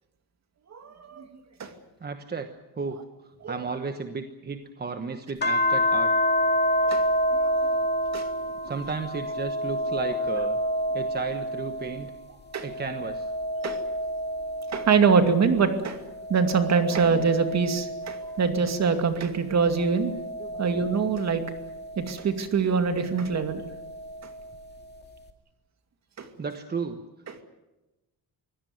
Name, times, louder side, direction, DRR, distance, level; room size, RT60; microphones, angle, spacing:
voice 1, 0.7-1.3 1.6-1.7 3.4-3.7 6.8-7.0 7.3-7.7 8.1-8.3 12.5-12.7 13.6-13.8 14.7-16.0 16.3-20.1 20.6-21.4 22.0-23.6 26.2-26.3, right 5 dB, 45° right, 7 dB, 2.5 m, -24 dB
voice 2, 2.0-2.5 2.8-3.0 3.2-6.1 8.6-10.6 10.9-12.1 12.6-13.3 20.4-20.6 26.4-27.0, right 4 dB, 25° right, 7 dB, 1.1 m, -34 dB
sound 1, 5.4-12.1 12.6-15.5 16.1-18.8 19.6-22.0 23.4-24.5, equal, 25° left, 2.2 m, -29 dB
24.5 x 17.0 x 9.2 m, 1.0 s
cardioid pair, 155°, 38 cm